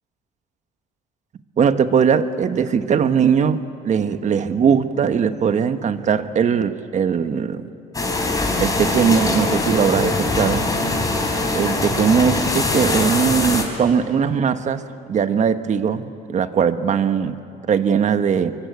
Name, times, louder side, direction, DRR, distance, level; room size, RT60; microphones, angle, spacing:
voice 1, 1.6-7.6 8.6-10.7 11.5-14.8 15.1-17.4 17.7-18.6, right 7 dB, 45° right, 10 dB, 1.3 m, -20 dB
sound 1, 7.9-13.6, left 2 dB, 20° left, 4.3 m, -22 dB
24.5 x 24.0 x 8.4 m, 2.8 s
cardioid pair, 110°, 17 cm